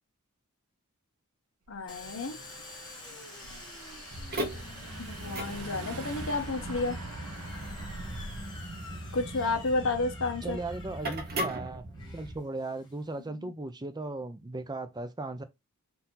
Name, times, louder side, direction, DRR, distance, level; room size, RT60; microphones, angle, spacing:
voice 1, 1.7-2.4 5.0-7.0 9.1-10.6 13.3-13.5, left 3 dB, 65° left, 1.1 m, -31 dB
Car / Engine, 1.7-8.6, right 3 dB, 80° right, 0.7 m, -45 dB
Domestic sounds home sounds, 1.9-13.3, left 3 dB, 20° left, 1.3 m, -48 dB
sound 1, 4.1-12.4, right 1 dB, 45° right, 0.9 m, -38 dB
voice 2, 10.4-11.9 12.1-15.4, right 2 dB, 20° right, 0.5 m, -37 dB
4.4 x 2.8 x 3.8 m
head